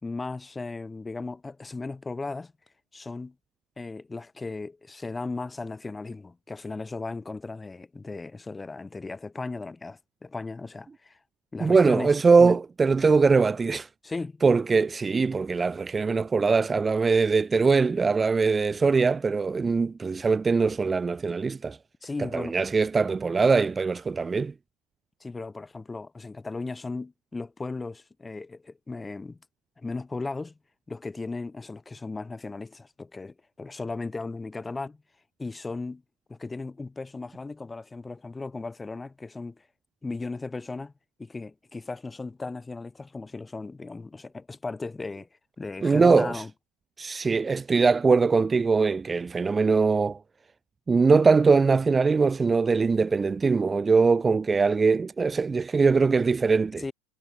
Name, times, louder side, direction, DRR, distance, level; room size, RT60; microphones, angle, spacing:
voice 1, 0.0-2.5 2.9-3.3 3.8-11.2 11.5-12.6 14.0-14.4 22.0-22.6 25.2-29.4 29.8-30.6 30.9-35.0 35.4-36.0 36.3-39.7 40.0-40.9 41.2-45.3 45.6-46.5 56.8-56.9, left 3 dB, 15° left, 1.7 m, -36 dB
voice 2, 11.6-13.9 14.4-21.8 22.3-24.5 45.8-46.4 47.0-50.2 50.9-56.8, right 4 dB, 20° right, 0.4 m, -22 dB
hypercardioid pair, 85°, 0 cm